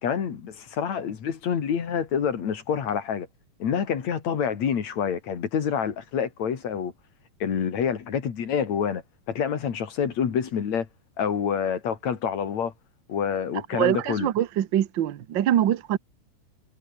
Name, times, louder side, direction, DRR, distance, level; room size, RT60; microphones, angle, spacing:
voice 1, 0.0-3.3 3.6-6.9 7.4-9.0 9.3-10.9 11.2-12.7 13.1-14.3, left 7 dB, 55° left, 3.6 m, -27 dB
voice 2, 13.7-16.0, right 11 dB, 80° right, 1.0 m, -24 dB
omnidirectional pair, 3.8 m